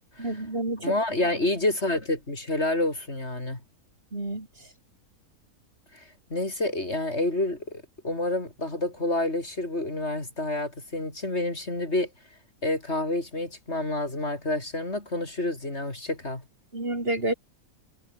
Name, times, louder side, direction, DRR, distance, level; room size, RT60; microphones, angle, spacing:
voice 1, 0.2-0.9 4.1-4.5 16.7-17.3, right 2 dB, 40° right, 4.2 m, -29 dB
voice 2, 0.8-3.6 5.9-6.0 6.3-12.1 12.6-16.4, left 2 dB, 45° left, 4.9 m, -28 dB
omnidirectional pair, 1.6 m